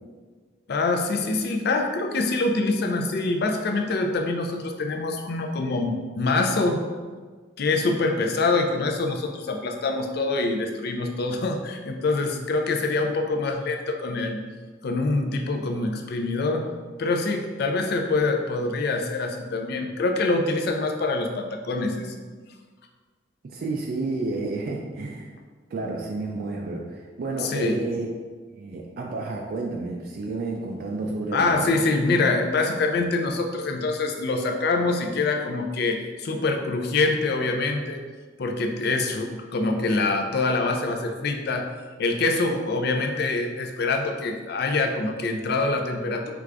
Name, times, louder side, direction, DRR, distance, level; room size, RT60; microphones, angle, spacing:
voice 1, 0.7-6.8 7.6-14.4 14.8-16.7 17.0-22.1 27.4-27.8 31.3-38.0 38.4-41.7 42.0-46.3, left 3 dB, 60° left, 4 dB, 0.4 m, -25 dB
voice 2, 23.4-25.3 25.7-28.1 28.5-31.8, right 3 dB, 55° right, 0 dB, 0.4 m, -30 dB
4.7 x 3.3 x 2.5 m, 1.5 s
head